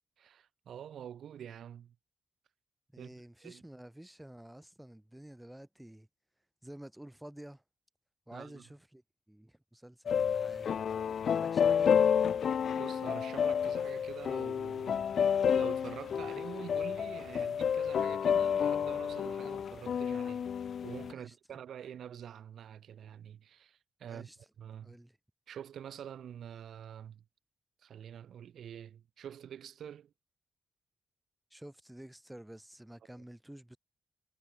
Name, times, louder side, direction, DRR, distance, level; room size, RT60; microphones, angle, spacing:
voice 1, 0.2-1.9 3.0-3.1 3.4-3.6 8.3-8.7 12.7-15.1 15.5-20.5 20.8-24.3 24.6-25.0 25.5-27.2 27.8-30.1, right 9 dB, 85° right, 1.5 m, -46 dB
voice 2, 2.9-6.1 6.6-7.6 8.3-9.0 9.3-10.7 11.3-12.0 21.1-21.3 24.1-24.4 24.8-25.2 31.5-33.8, right 1 dB, 5° right, 2.7 m, -50 dB
sound 1, 10.1-21.1, left 7 dB, 70° left, 0.4 m, -30 dB
cardioid pair, 85°, 0 cm